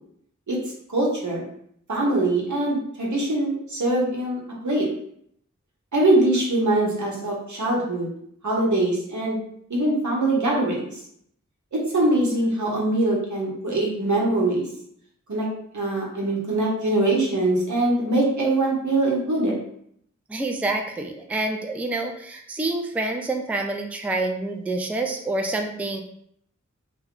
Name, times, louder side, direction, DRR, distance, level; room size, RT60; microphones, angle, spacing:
voice 1, 0.9-1.4 1.9-4.9 5.9-8.1 8.4-9.4 9.7-11.0 11.7-14.6 15.3-15.5 15.7-19.6, right 2 dB, 80° right, -3 dB, 0.9 m, -23 dB
voice 2, 20.3-26.0, right 2 dB, 5° right, 3 dB, 0.3 m, -27 dB
2.3 x 2.1 x 3.6 m, 0.69 s
wide cardioid pair, 45°, 29 cm